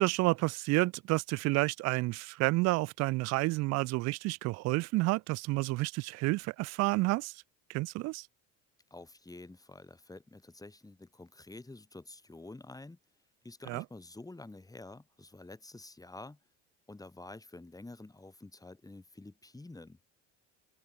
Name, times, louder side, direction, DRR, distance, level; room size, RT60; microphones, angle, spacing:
voice 1, 0.0-7.4 7.7-8.3 13.7-13.8, right 22 dB, 50° right, 0.4 m, -30 dB
voice 2, 8.9-13.0 13.4-16.4 16.9-20.0, left 2 dB, 10° left, 5.4 m, -49 dB
open air
supercardioid pair, 105°, 35 cm